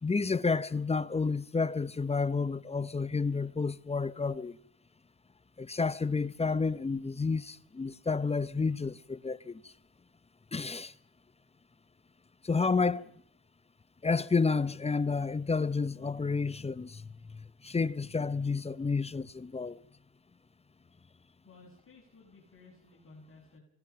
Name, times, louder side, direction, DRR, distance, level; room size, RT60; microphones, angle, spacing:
voice 1, 0.0-4.6 5.6-9.7 10.5-10.9 12.4-13.1 14.0-19.8, left 4 dB, 15° left, 0.8 m, -30 dB
voice 2, 21.4-23.6, left 3 dB, 30° left, 7.2 m, -56 dB
27.0 x 18.0 x 5.8 m
cardioid pair, 90°, 41 cm